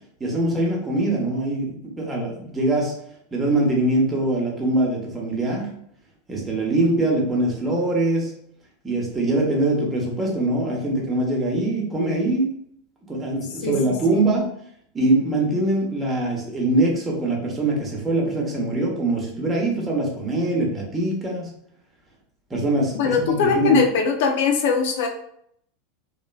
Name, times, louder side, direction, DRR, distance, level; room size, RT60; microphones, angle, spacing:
voice 1, 0.2-2.9 3.3-5.7 6.3-8.3 8.8-12.5 13.1-14.5 14.9-21.5 22.5-23.8, right 2 dB, 20° right, -1 dB, 0.9 m, -23 dB
voice 2, 13.6-14.3 23.0-25.1, left 5 dB, 60° left, 4 dB, 0.4 m, -21 dB
2.9 x 2.3 x 2.3 m, 0.69 s
figure-of-eight pair, 85°, 0 cm